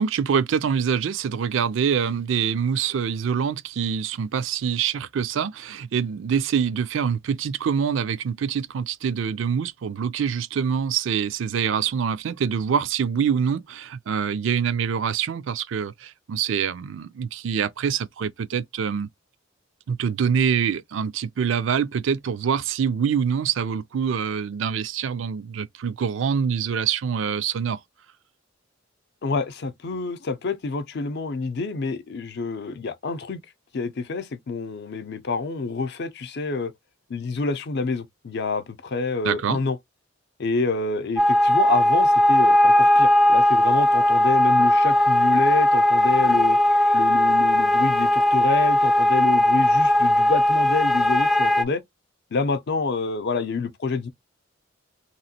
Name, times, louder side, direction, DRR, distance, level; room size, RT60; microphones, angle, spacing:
voice 1, 0.0-19.1 19.9-27.8 39.2-39.6, right 7 dB, 70° right, 0.4 m, -25 dB
voice 2, 29.2-33.4 33.7-36.7 37.1-39.8 40.4-46.6 46.9-51.8 52.3-54.1, left 4 dB, 60° left, 0.5 m, -27 dB
sound 1, 41.2-51.6, left 1 dB, ahead, 0.3 m, -18 dB
3.0 x 2.8 x 2.7 m
head